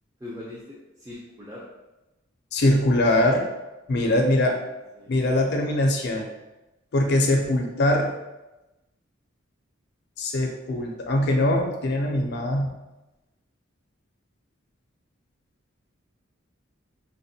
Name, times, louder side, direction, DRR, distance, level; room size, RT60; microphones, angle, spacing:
voice 1, 0.2-1.6 3.1-3.2 3.9-4.7 5.0-5.1, left 1 dB, 15° right, -6 dB, 0.5 m, -41 dB
voice 2, 2.5-3.5 3.9-4.6 5.1-6.3 6.9-8.1 10.2-12.8, left 1 dB, 55° left, 2 dB, 0.4 m, -22 dB
5.6 x 2.1 x 2.7 m, 1.0 s
head